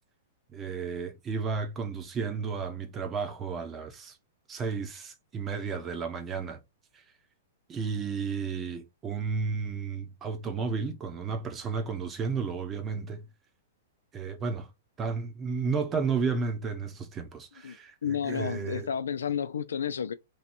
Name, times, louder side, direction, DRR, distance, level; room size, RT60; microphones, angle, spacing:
voice 1, 0.5-4.2 4.5-6.6 7.7-13.2 14.1-14.7 15.0-18.9, right 5 dB, 20° right, 1.0 m, -32 dB
voice 2, 18.0-20.1, left 8 dB, 90° left, 0.6 m, -31 dB
3.2 x 2.7 x 4.3 m
hypercardioid pair, 135°, 0 cm